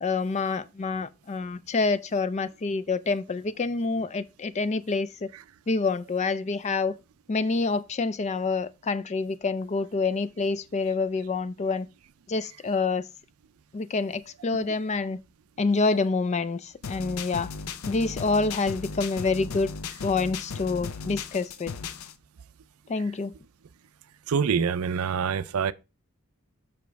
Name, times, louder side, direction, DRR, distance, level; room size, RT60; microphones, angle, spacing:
voice 1, 0.0-5.3 5.7-7.0 7.3-11.9 12.3-13.1 13.7-15.2 15.6-17.5 17.9-19.7 20.0-21.7 22.9-23.3, left 3 dB, 30° left, 0.3 m, -27 dB
sound 1, 16.8-22.1, left 5 dB, 75° left, 0.6 m, -36 dB
voice 2, 24.3-25.7, right 6 dB, 70° right, 0.4 m, -25 dB
6.0 x 5.1 x 4.6 m
head